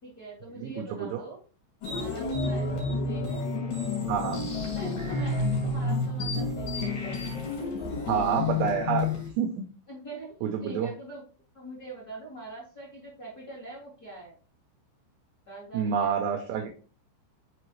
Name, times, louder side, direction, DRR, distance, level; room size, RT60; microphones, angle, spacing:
voice 1, 0.0-1.4 1.9-3.4 4.7-7.3 9.9-11.2 11.5-14.4 15.5-16.7, right 2 dB, 30° left, -7 dB, 1.8 m, -44 dB
voice 2, 0.6-1.2 4.1-4.5 8.1-9.1 9.4-9.7 10.4-10.9 15.7-16.7, right 7 dB, 80° right, 4 dB, 2.5 m, -28 dB
sound 1, 1.8-9.3, left 3 dB, 50° left, 3.2 m, -30 dB
7.0 x 4.8 x 3.1 m, 0.39 s
omnidirectional pair, 5.7 m